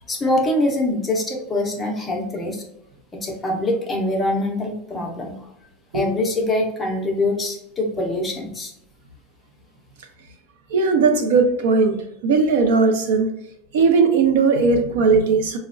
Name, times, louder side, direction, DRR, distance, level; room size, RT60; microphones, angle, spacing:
voice 1, 0.1-2.6 3.1-5.4 5.9-8.7, left 1 dB, 10° left, 0 dB, 0.5 m, -24 dB
voice 2, 10.7-13.3 13.7-15.6, right 4 dB, 75° right, 5 dB, 0.6 m, -18 dB
4.8 x 2.1 x 2.4 m, 0.82 s
supercardioid pair, 175°, 0 cm